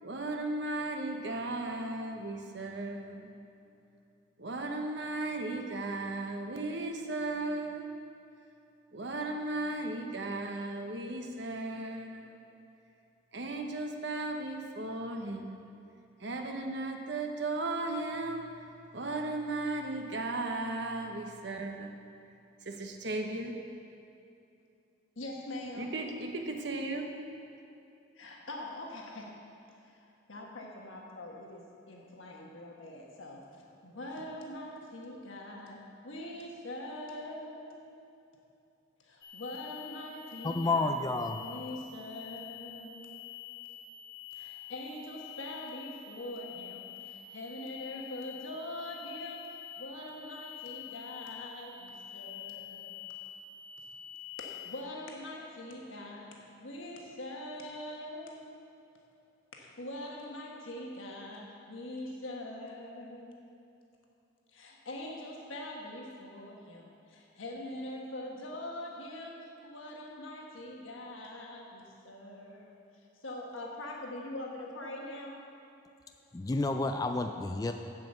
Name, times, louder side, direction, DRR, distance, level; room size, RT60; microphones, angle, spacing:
voice 1, 0.0-3.3 4.4-7.9 8.9-12.4 13.3-15.6 16.2-21.9 22.6-23.5 25.8-27.1, right 2 dB, 60° right, 4 dB, 1.0 m, -36 dB
voice 2, 25.2-25.9 28.1-29.4 29.8-29.9 30.3-33.4 33.8-38.0 39.0-41.0 41.4-43.2 44.3-53.0 54.4-58.7 59.5-63.4 64.5-72.7 73.2-75.4, left 1 dB, 90° left, -1 dB, 1.4 m, -43 dB
sound 1, 39.2-54.8, left 10 dB, 60° left, 0.9 m, -47 dB
voice 3, 40.4-41.4 76.3-77.7, left 2 dB, 20° left, 5 dB, 0.3 m, -30 dB
7.7 x 7.2 x 8.0 m, 2.7 s
head